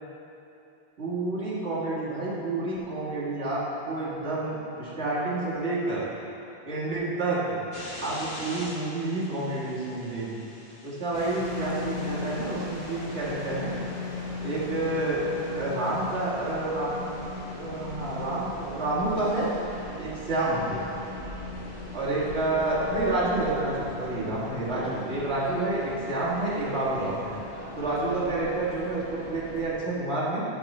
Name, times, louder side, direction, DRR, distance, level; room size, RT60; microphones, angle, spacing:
voice 1, 1.0-6.1 6.6-7.6 8.0-10.4 10.8-13.7 14.4-15.3 15.5-17.0 17.6-19.5 20.0-20.9 21.9-27.3 27.8-30.4, right 2 dB, 75° right, -7 dB, 1.9 m, -29 dB
sound 1, 7.7-13.3, left 1 dB, 65° left, 1.3 m, -44 dB
sound 2, 11.1-29.7, left 2 dB, 40° left, 1.2 m, -38 dB
10.5 x 4.8 x 4.2 m, 2.9 s
omnidirectional pair, 1.1 m